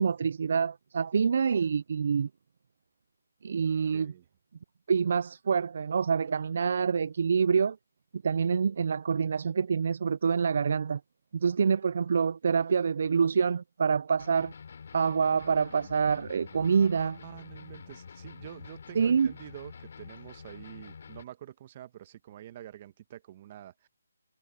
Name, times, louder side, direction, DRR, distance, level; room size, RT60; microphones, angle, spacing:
voice 1, 0.0-2.3 3.4-4.1 4.9-7.8 8.2-11.0 11.3-14.5 14.9-17.2 19.0-19.3, right 6 dB, 45° right, 0.3 m, -26 dB
voice 2, 3.9-4.2 16.5-23.9, right 12 dB, 25° right, 1.3 m, -47 dB
sound 1, 14.2-21.2, left 6 dB, 45° left, 3.3 m, -47 dB
hypercardioid pair, 170°, 0 cm